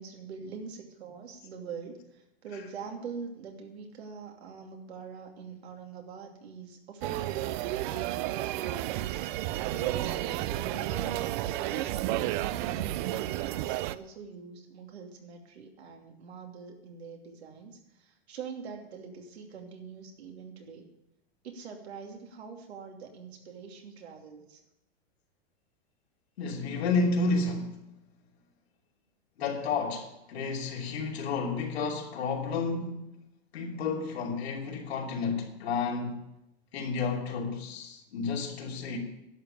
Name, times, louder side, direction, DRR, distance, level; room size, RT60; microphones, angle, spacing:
voice 1, 0.0-9.1 9.7-20.9 21.4-24.6, right 6 dB, 85° right, 2.8 m, -43 dB
sound 1, 7.0-14.0, right 15 dB, 50° right, 0.6 m, -32 dB
voice 2, 26.4-27.8 29.4-33.0 33.5-36.2 36.7-39.0, left 4 dB, 85° left, 2.9 m, -31 dB
11.5 x 6.9 x 8.6 m
hypercardioid pair, 125°, 31 cm